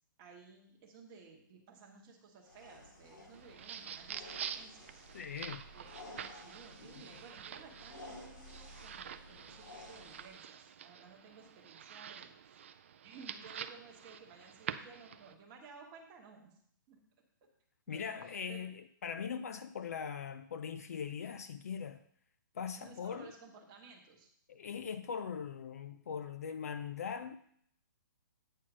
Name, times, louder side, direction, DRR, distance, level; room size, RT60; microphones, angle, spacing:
voice 1, 0.2-5.1 5.7-6.0 6.3-12.3 13.0-16.6 16.9-17.0 17.9-18.6 22.7-24.3, right 4 dB, 20° right, 1.3 m, -56 dB
sound 1, 2.4-10.4, left 2 dB, 75° left, 3.2 m, -54 dB
sound 2, 3.3-15.3, right 8 dB, 35° right, 0.4 m, -47 dB
voice 2, 5.1-5.6 17.9-22.0 22.5-23.3 24.5-27.4, left 7 dB, 45° left, 0.5 m, -41 dB
9.0 x 4.3 x 6.1 m
hypercardioid pair, 175°, 11 cm